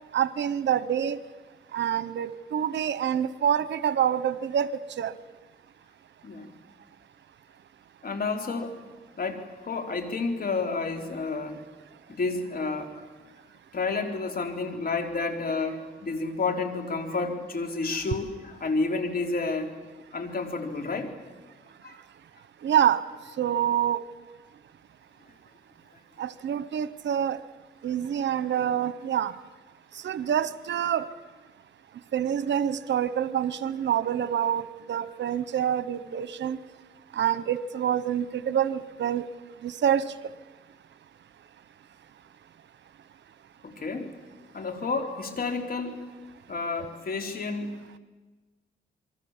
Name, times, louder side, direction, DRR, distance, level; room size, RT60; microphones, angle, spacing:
voice 1, 0.1-1.2 1.7-5.1 22.6-23.0 23.4-24.0 26.2-27.4 27.8-29.3 30.0-31.1 32.1-36.6 37.1-39.2 39.6-40.1, right 9 dB, 80° right, 15 dB, 1.0 m, -26 dB
voice 2, 8.0-8.8 9.2-11.6 12.1-13.1 13.7-19.7 20.1-21.1 21.8-22.0 43.6-44.1 44.5-46.0 46.5-47.7, left 3 dB, 55° left, 5 dB, 3.7 m, -30 dB
27.5 x 23.0 x 7.4 m, 1.3 s
cardioid pair, 80°, 18 cm